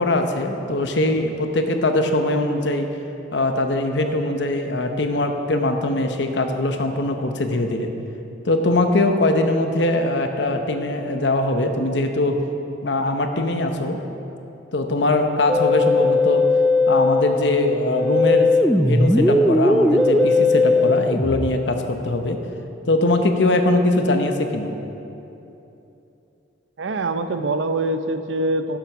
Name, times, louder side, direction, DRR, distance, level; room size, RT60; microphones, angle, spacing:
voice 1, 0.0-2.9 3.3-7.9 8.5-12.4 12.8-14.0 14.7-16.4 16.9-18.5 18.8-22.4 22.9-24.7, left 2 dB, 65° left, 5 dB, 0.9 m, -21 dB
Musical instrument, 15.5-21.5, left 2 dB, ahead, 0.4 m, -18 dB
voice 2, 26.8-28.8, right 2 dB, 80° right, 9 dB, 0.6 m, -24 dB
10.5 x 7.6 x 6.0 m, 2.9 s
head